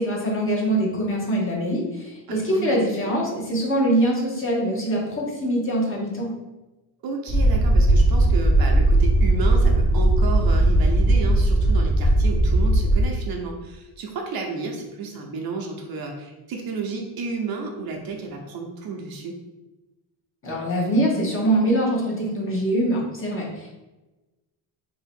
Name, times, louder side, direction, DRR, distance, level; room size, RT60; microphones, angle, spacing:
voice 1, 0.0-6.3 20.4-23.7, right 1 dB, 30° left, -2 dB, 0.9 m, -23 dB
voice 2, 2.3-2.8 7.0-19.4, right 4 dB, 55° right, 2 dB, 0.7 m, -32 dB
sound 1, 7.3-13.1, right 1 dB, ahead, 0.7 m, -18 dB
3.0 x 2.8 x 4.3 m, 1.1 s
cardioid pair, 165°, 44 cm